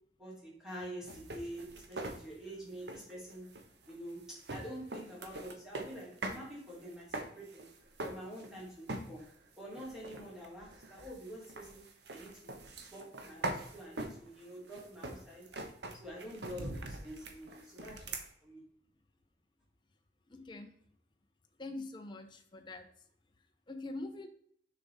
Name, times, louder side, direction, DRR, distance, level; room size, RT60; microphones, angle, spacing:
voice 1, 0.2-3.5 3.9-7.7 8.0-9.2 9.6-11.8 12.1-12.6 12.9-15.4 16.0-18.6, equal, 5° right, -6 dB, 2.8 m, -47 dB
sound 1, 1.1-6.4 6.7-8.6 8.9-9.3 9.7-18.3, right 2 dB, 65° right, 0.9 m, -43 dB
voice 2, 20.3-20.7 21.6-22.9 23.7-24.3, left 2 dB, 25° left, 5 dB, 0.5 m, -44 dB
6.6 x 4.9 x 3.9 m, 0.66 s
head